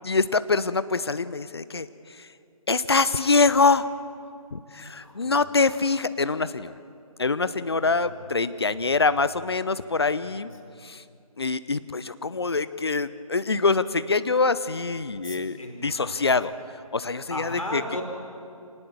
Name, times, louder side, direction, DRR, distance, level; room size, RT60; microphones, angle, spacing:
voice 1, 0.0-1.9 2.2-2.3 2.7-3.9 4.5-6.7 7.2-10.5 10.8-11.0 11.4-16.5 16.9-17.8, left 4 dB, 40° left, 15 dB, 0.8 m, -24 dB
voice 2, 4.7-5.5 7.8-8.3 10.2-10.5 10.7-10.8 15.2-16.2 17.3-18.0, left 1 dB, 65° left, 2 dB, 4.7 m, -37 dB
26.0 x 19.0 x 7.3 m, 2.5 s
figure-of-eight pair, 155°, 19 cm